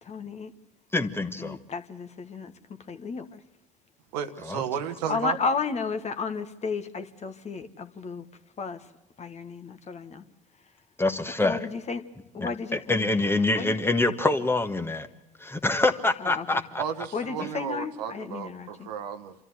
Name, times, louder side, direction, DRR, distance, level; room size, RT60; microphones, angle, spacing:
voice 1, 0.0-0.5 1.4-2.5 2.9-3.4 5.1-8.3 8.6-8.9 9.2-10.2 11.4-12.0 12.3-13.8 16.2-16.6 17.1-18.9, left 5 dB, 30° left, 1.7 m, -33 dB
voice 2, 0.9-1.6 4.4-4.6 11.0-11.6 12.4-15.1 15.4-16.8, left 2 dB, 10° left, 1.5 m, -25 dB
voice 3, 4.1-5.4 16.8-19.3, right 8 dB, 75° right, 1.3 m, -33 dB
26.5 x 13.5 x 7.9 m
hypercardioid pair, 70°, 21 cm